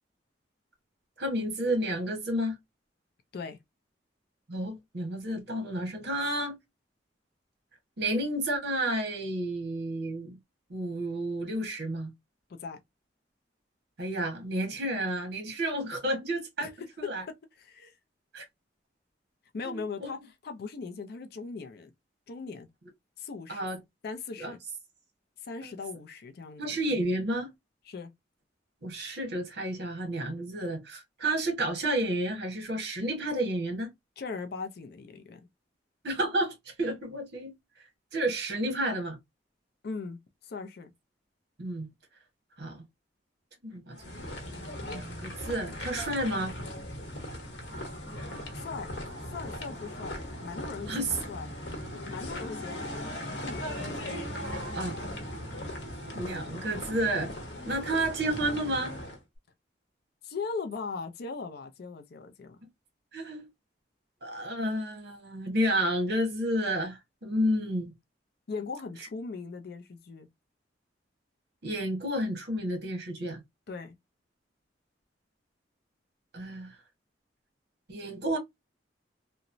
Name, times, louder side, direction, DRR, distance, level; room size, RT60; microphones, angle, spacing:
voice 1, 1.2-2.6 4.5-6.6 8.0-10.4 10.7-12.1 14.0-16.7 17.0-17.2 18.3-18.4 19.6-20.2 23.5-23.8 24.4-24.5 26.6-27.5 28.8-33.9 36.0-37.5 38.1-39.2 41.6-41.9 42.6-42.8 43.6-46.5 50.9-51.1 54.7-54.9 56.1-57.3 57.6-59.0 63.1-63.5 64.2-67.9 71.6-73.4 76.3-76.7 77.9-78.4, right 1 dB, 60° right, 1.0 m, -31 dB
voice 2, 17.6-18.0 19.5-21.9 22.3-22.7 23.2-23.7 24.0-24.6 25.4-26.8 27.9-28.1 34.2-35.5 39.8-40.9 47.4-47.5 48.5-48.9 49.3-51.5 51.9-54.2 60.2-62.6 68.5-70.3 73.7-73.9, left 4 dB, 60° left, 0.4 m, -39 dB
sound 1, 44.0-59.2, left 1 dB, 85° left, 1.0 m, -38 dB
2.9 x 2.1 x 2.5 m
head